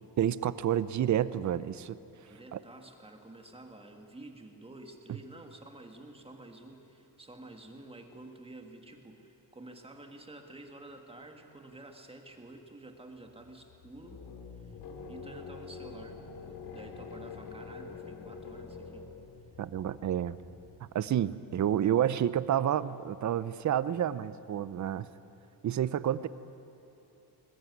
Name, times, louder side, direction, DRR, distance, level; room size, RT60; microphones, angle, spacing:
voice 1, 0.2-2.0 2.5-2.6 19.6-20.4 20.8-25.1 25.6-26.3, right 10 dB, 45° right, 16 dB, 0.6 m, -29 dB
voice 2, 2.3-14.2 14.5-14.8 15.1-19.1, right 2 dB, 15° right, 4 dB, 1.7 m, -50 dB
sound 1, 13.2-21.1, left 5 dB, 70° left, 2.8 m, -46 dB
21.0 x 19.5 x 9.4 m, 2.9 s
wide cardioid pair, 170°, 42 cm